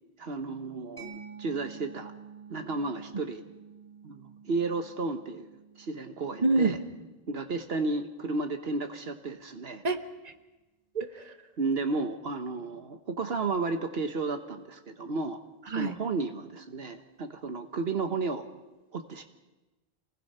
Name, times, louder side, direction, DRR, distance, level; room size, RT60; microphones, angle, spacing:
voice 1, 0.2-2.1 2.5-3.4 4.0-5.5 5.8-6.8 7.3-9.8 11.6-15.4 15.7-18.5 18.9-19.2, right 3 dB, 75° right, 7 dB, 1.4 m, -33 dB
Mallet percussion, 1.0-8.4, right 6 dB, 40° left, 3.5 m, -50 dB
voice 2, 6.4-6.8 9.8-10.3 10.9-11.3 15.7-16.0, right 3 dB, 40° right, 6 dB, 1.5 m, -27 dB
28.5 x 19.0 x 5.5 m, 1.1 s
omnidirectional pair, 1.0 m